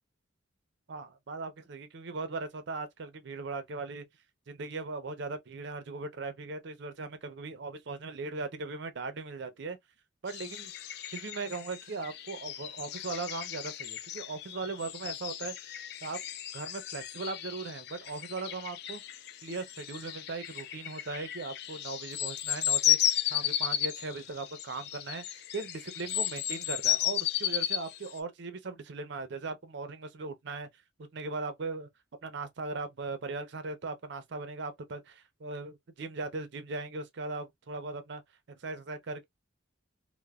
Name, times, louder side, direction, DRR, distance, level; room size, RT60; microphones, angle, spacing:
voice 1, 0.9-4.1 4.5-9.8 10.2-10.7 11.1-15.6 16.0-16.2 16.5-19.0 19.4-30.7 31.1-31.9 32.2-38.2 38.6-39.2, right 3 dB, 65° right, 0.5 m, -39 dB
sound 1, 10.3-28.2, left 12 dB, 55° left, 0.3 m, -34 dB
2.9 x 2.0 x 2.3 m
head